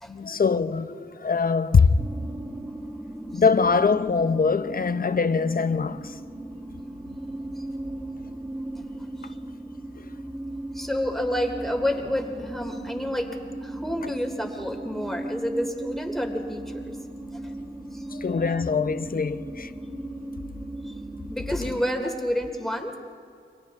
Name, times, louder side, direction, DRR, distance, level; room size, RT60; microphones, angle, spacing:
voice 1, 0.1-1.9 3.3-6.2 18.1-20.0, left 5 dB, 45° left, 0.9 m, -23 dB
sound 1, 2.0-21.9, right 1 dB, 15° right, 5.6 m, -37 dB
voice 2, 10.7-17.0 17.9-18.1 20.8-20.9 21.3-22.9, equal, ahead, 3.1 m, -29 dB
30.0 x 24.5 x 3.7 m
cardioid pair, 55°, 20 cm